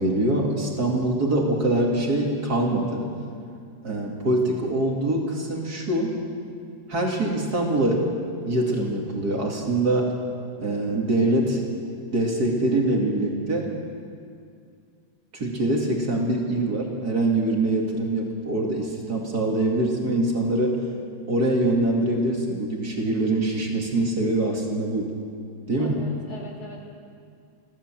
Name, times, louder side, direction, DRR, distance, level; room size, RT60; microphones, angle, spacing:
voice 1, 0.0-3.0 3.8-6.1 6.9-8.1 8.4-10.1 10.6-11.6 12.1-13.7 15.3-20.8 21.3-25.1 25.7-26.0, right 1 dB, 50° right, -1 dB, 3.0 m, -24 dB
voice 2, 25.8-26.8, left 3 dB, 50° left, -2 dB, 3.6 m, -41 dB
29.5 x 12.5 x 7.6 m, 2.3 s
omnidirectional pair, 2.2 m